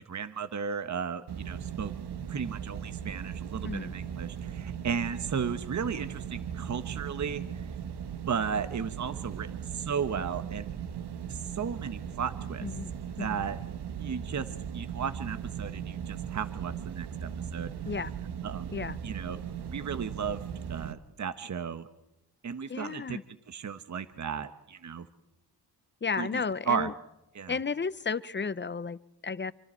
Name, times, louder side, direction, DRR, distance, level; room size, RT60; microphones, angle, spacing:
voice 1, 0.0-1.9 2.3-7.6 8.3-10.7 11.3-12.7 13.2-13.6 14.0-14.5 14.7-17.7 18.4-18.7 19.0-19.4 19.7-20.4 20.7-21.9 22.4-23.2 23.5-25.1 26.2-26.9 27.3-27.6, right 6 dB, 45° right, 11 dB, 1.2 m, -34 dB
sound 1, 1.3-20.9, right 8 dB, 90° right, 1.3 m, -38 dB
voice 2, 12.6-12.9 13.2-13.5 17.9-18.1 18.7-19.0 22.7-23.2 26.0-26.9 27.5-29.5, left 5 dB, 30° left, 17 dB, 0.7 m, -33 dB
26.5 x 25.0 x 4.5 m, 0.88 s
cardioid pair, 100°, 39 cm